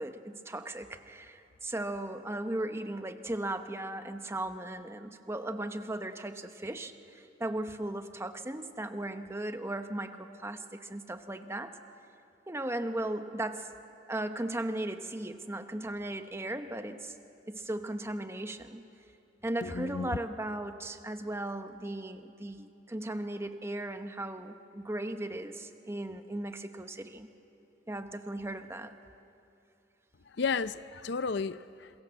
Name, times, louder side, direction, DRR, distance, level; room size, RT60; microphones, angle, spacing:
voice 1, 0.0-11.7 12.5-13.7 14.1-17.1 17.5-18.8 19.4-27.3 27.9-28.9, right 1 dB, 15° right, 8 dB, 1.0 m, -37 dB
voice 2, 19.6-20.2 30.3-32.0, left 5 dB, 65° left, 14 dB, 0.5 m, -33 dB
27.5 x 22.5 x 7.6 m, 2.8 s
head